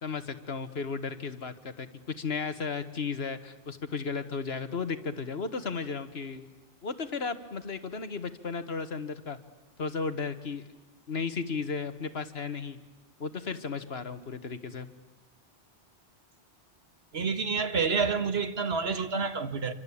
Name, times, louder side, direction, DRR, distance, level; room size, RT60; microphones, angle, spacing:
voice 1, 0.0-6.5 6.8-9.4 9.8-10.6 11.1-12.8 13.2-14.9, left 5 dB, 75° left, 1.8 m, -34 dB
voice 2, 17.1-19.7, right 5 dB, 75° right, 1.8 m, -28 dB
27.5 x 25.0 x 8.6 m
omnidirectional pair, 1.1 m